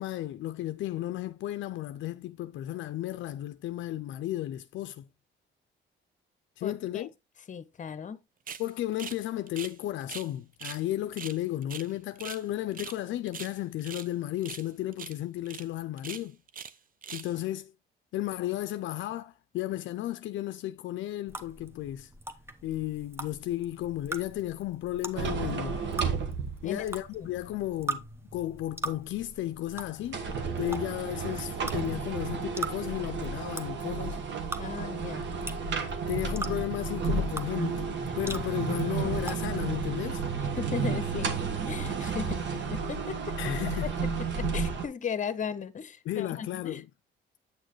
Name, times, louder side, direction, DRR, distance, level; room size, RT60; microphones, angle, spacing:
voice 1, 0.0-5.0 6.6-7.1 8.6-16.4 17.1-17.7 18.1-22.1 22.6-25.8 26.6-28.0 28.3-30.2 30.6-34.2 36.1-37.8 38.2-40.2 43.4-44.0 46.1-46.9, left 14 dB, 75° left, 0.5 m, -34 dB
voice 2, 6.6-7.1 7.5-8.2 26.6-26.8 27.2-27.3 34.6-35.3 40.6-41.4 41.7-43.4 43.8-43.9 44.4-46.8, left 7 dB, 40° left, 0.8 m, -36 dB
sound 1, 8.5-8.7 9.0-9.2 9.5-10.3 10.6-10.8 11.1-12.4 12.7-13.0 13.3-14.1 14.4-14.7 14.9-15.2 15.5-15.6 16.0-16.8 17.0-17.3, right 7 dB, 45° right, 0.7 m, -42 dB
sound 2, 21.3-39.8, right 2 dB, 10° right, 0.9 m, -41 dB
sound 3, 25.2-27.0 27.4-27.5 30.0-44.9, right 5 dB, 65° right, 1.4 m, -32 dB
8.4 x 6.4 x 3.0 m
cardioid pair, 90°, 20 cm